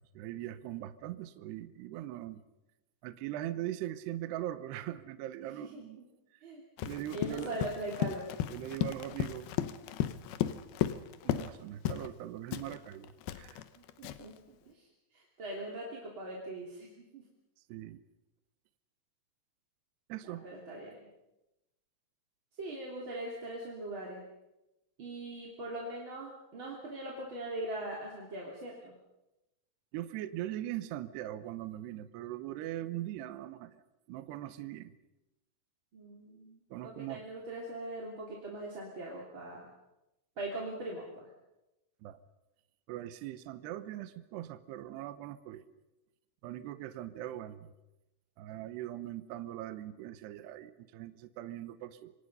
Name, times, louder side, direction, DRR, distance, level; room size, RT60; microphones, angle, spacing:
voice 1, 0.1-2.4 3.0-6.0 6.8-7.5 8.5-9.5 11.2-13.6 17.7-18.0 20.1-20.5 29.9-33.8 34.1-34.9 36.7-37.2 42.0-42.2 42.9-45.6 46.4-47.7 48.4-52.1, right 13 dB, 75° right, 12 dB, 2.7 m, -41 dB
voice 2, 5.4-6.1 6.4-8.3 13.7-14.9 15.1-17.2 20.2-21.1 22.6-24.2 25.0-28.9 35.9-39.7 40.4-41.3, right 1 dB, 30° right, -3 dB, 3.0 m, -41 dB
Run, 6.8-11.6 11.9-12.1 12.5-14.4, left 12 dB, 75° left, 2.2 m, -35 dB
27.5 x 25.0 x 5.5 m, 0.96 s
omnidirectional pair, 5.6 m